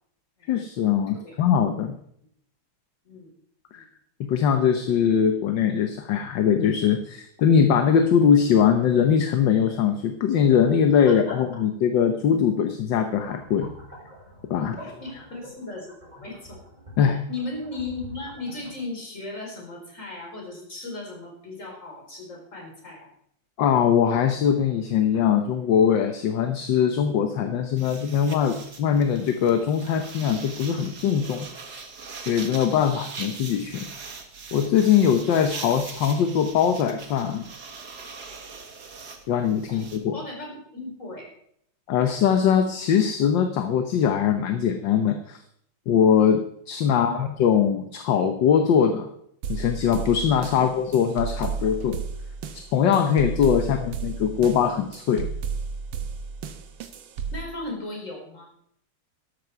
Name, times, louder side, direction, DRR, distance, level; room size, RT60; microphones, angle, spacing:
voice 1, 0.5-2.0 3.7-3.8 4.2-13.7 14.5-14.9 17.0-17.2 23.6-31.8 32.3-33.9 34.5-37.4 39.3-40.2 41.9-45.4 45.9-49.1 49.5-52.0 52.7-55.3, left 8 dB, 70° left, 6 dB, 1.6 m, -21 dB
voice 2, 11.1-11.6 14.8-16.6 17.3-23.1 39.7-39.8 40.1-41.3 46.9-47.2 50.5-50.8 57.3-58.5, left 2 dB, 40° left, 0 dB, 4.8 m, -37 dB
sound 1, 13.0-18.8, equal, 20° right, 7.1 m, -46 dB
sound 2, 27.8-40.0, right 4 dB, 55° right, 2.1 m, -41 dB
sound 3, 49.4-57.4, right 5 dB, 85° right, 1.8 m, -33 dB
13.0 x 12.0 x 4.7 m, 0.69 s
omnidirectional pair, 2.1 m